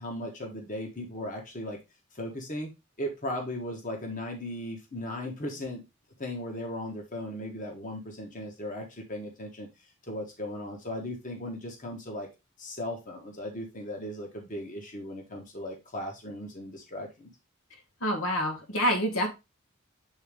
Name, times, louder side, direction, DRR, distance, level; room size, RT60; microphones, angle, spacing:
voice 1, 0.0-1.8 2.1-2.7 3.0-5.8 6.2-9.7 10.1-12.3 12.6-17.3, left 1 dB, 40° left, 2 dB, 1.4 m, -37 dB
voice 2, 18.0-19.3, equal, 80° left, 3 dB, 1.7 m, -27 dB
7.9 x 3.9 x 3.6 m, 0.24 s
head